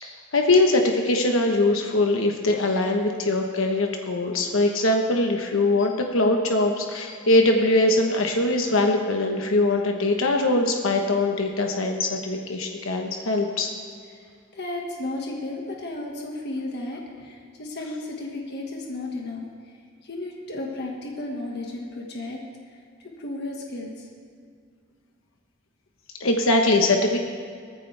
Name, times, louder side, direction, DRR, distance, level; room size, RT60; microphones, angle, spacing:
voice 1, 0.3-13.7 26.2-27.2, left 2 dB, 75° left, 3 dB, 1.2 m, -22 dB
voice 2, 14.5-19.4 20.0-22.4 22.7-22.8 23.2-24.1, left 2 dB, 55° left, 0 dB, 1.7 m, -33 dB
18.0 x 14.5 x 3.4 m, 2.2 s
head